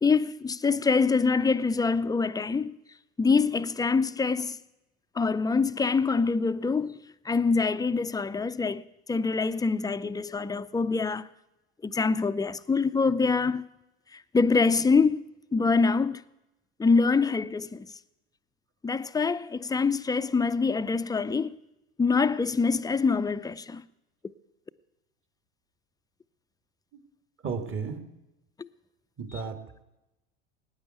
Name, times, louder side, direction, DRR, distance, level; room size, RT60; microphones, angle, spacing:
voice 1, 0.0-2.8 3.2-4.6 5.2-8.8 9.1-11.3 11.8-13.6 14.1-16.2 16.8-17.9 18.8-21.6 22.0-23.8 28.6-28.7 29.3-29.4, left 4 dB, 10° left, 0.6 m, -25 dB
voice 2, 27.4-28.0 29.2-29.8, right 5 dB, 40° right, 2.4 m, -34 dB
18.0 x 9.7 x 7.9 m
hypercardioid pair, 85°, 32 cm